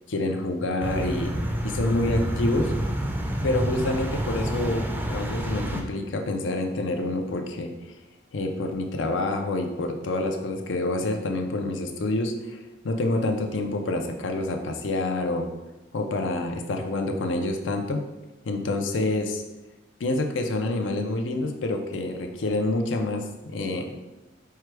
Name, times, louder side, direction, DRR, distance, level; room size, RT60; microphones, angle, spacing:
voice 1, 0.1-1.3 1.6-2.7 3.4-7.7 8.3-12.6 12.8-15.5 15.9-18.0 18.4-19.4 20.0-23.9, left 2 dB, 80° left, 4 dB, 0.5 m, -27 dB
sound 1, 0.8-5.8, equal, 10° right, 0.4 m, -28 dB
4.6 x 2.2 x 4.6 m, 1.1 s
head